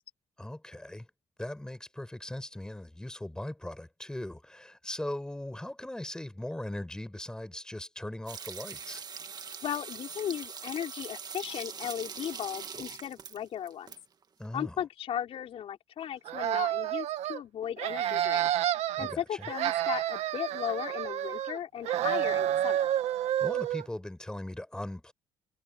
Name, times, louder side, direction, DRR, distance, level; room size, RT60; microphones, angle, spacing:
voice 1, 0.4-1.1 1.4-9.0 14.4-14.8 19.0-19.5 23.4-25.1, left 1 dB, 5° left, 5.4 m, -39 dB
sound 1, 8.3-14.0 14.2-14.3, right 6 dB, 35° right, 1.9 m, -42 dB
voice 2, 9.6-13.9 14.5-18.5 19.0-22.9, left 10 dB, 60° left, 4.3 m, -36 dB
sound 2, 16.3-17.4 17.8-19.1 19.4-21.6 21.9-23.9, right 12 dB, 70° right, 1.9 m, -29 dB
cardioid pair, 100°, 11 cm